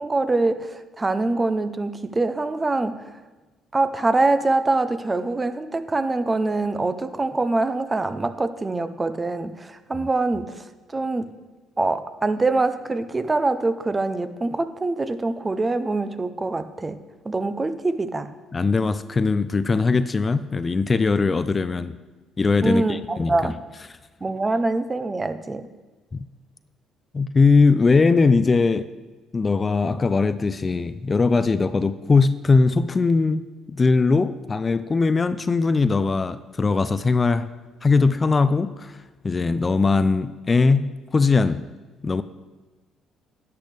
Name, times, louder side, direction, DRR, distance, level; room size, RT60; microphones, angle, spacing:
voice 1, 0.0-3.1 3.7-10.6 10.9-11.3 11.8-17.0 17.2-18.3 22.6-23.6 24.2-25.7, right 2 dB, 25° right, 11 dB, 0.7 m, -24 dB
voice 2, 18.5-21.9 22.4-23.5 26.1-26.3 27.1-28.9 29.3-33.4 33.7-37.5 37.8-38.9 39.2-41.6 42.0-42.2, left 4 dB, 35° left, 13 dB, 0.5 m, -20 dB
11.5 x 10.0 x 3.4 m, 1.2 s
hypercardioid pair, 50°, 0 cm